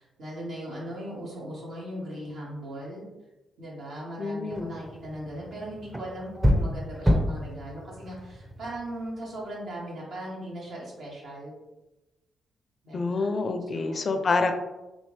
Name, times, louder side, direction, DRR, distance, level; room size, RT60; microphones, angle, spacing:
voice 1, 0.0-3.0 3.6-11.5 12.8-13.3 13.7-14.2, right 1 dB, 70° right, -5 dB, 1.1 m, -38 dB
voice 2, 4.2-4.7 12.9-14.5, left 3 dB, 50° left, 6 dB, 0.4 m, -27 dB
sound 1, 4.5-9.4, equal, 15° right, 0.5 m, -29 dB
2.7 x 2.7 x 3.1 m, 1.1 s
hypercardioid pair, 40°, 0 cm